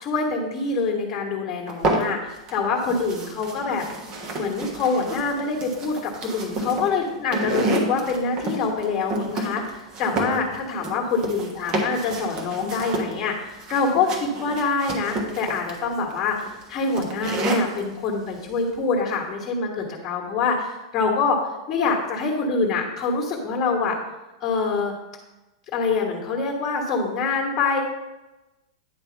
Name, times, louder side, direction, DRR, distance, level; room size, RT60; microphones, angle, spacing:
voice 1, 0.0-3.8 4.3-21.4 21.7-24.0 24.4-24.9 25.7-27.8, left 4 dB, 25° left, -2 dB, 1.5 m, -25 dB
sound 1, 1.7-2.5 2.8-17.8, right 2 dB, 35° right, 1.2 m, -29 dB
9.5 x 3.4 x 5.4 m, 1.1 s
figure-of-eight pair, 95°, 2 cm